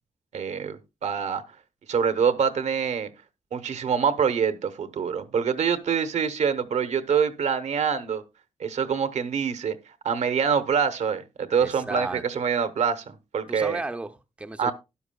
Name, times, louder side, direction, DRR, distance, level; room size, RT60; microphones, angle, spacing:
voice 1, 0.3-1.4 1.9-3.1 3.5-8.2 8.6-9.8 10.0-13.8 14.6-14.7, right 7 dB, 70° right, 0.9 m, -25 dB
voice 2, 11.6-12.2 13.5-14.7, right 2 dB, 10° right, 0.5 m, -34 dB
12.5 x 11.0 x 2.2 m
wide cardioid pair, 135°, 12 cm